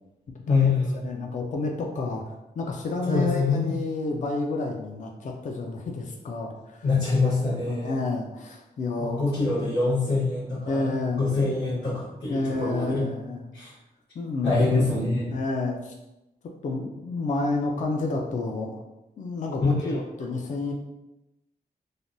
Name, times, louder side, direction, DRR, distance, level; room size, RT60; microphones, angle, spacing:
voice 1, 0.5-0.9 3.1-3.8 6.8-8.0 9.0-13.1 13.5-13.7 14.4-15.3 19.6-19.7, left 3 dB, 80° left, -12 dB, 1.3 m, -25 dB
voice 2, 1.0-6.9 7.7-9.2 10.7-11.3 12.3-13.5 14.1-14.7 15.3-15.9 16.4-18.8 19.2-20.7, left 3 dB, 50° left, 1 dB, 0.4 m, -30 dB
3.3 x 2.2 x 2.5 m, 0.95 s
wide cardioid pair, 105°, 17 cm